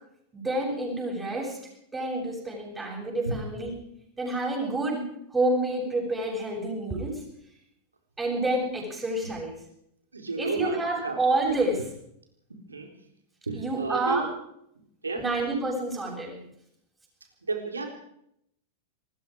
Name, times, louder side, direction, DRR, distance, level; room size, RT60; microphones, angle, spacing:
voice 1, 0.3-1.6 1.9-3.7 4.2-5.0 5.3-7.1 8.2-9.5 10.4-11.8 13.5-14.3 15.2-16.4, right 2 dB, 15° right, -4 dB, 7.4 m, -28 dB
voice 2, 10.1-11.2 12.5-13.0 13.5-14.2 15.0-15.3 17.4-17.9, right 3 dB, 75° right, 4 dB, 4.0 m, -32 dB
26.5 x 20.5 x 4.9 m, 0.74 s
figure-of-eight pair, 90°, 0 cm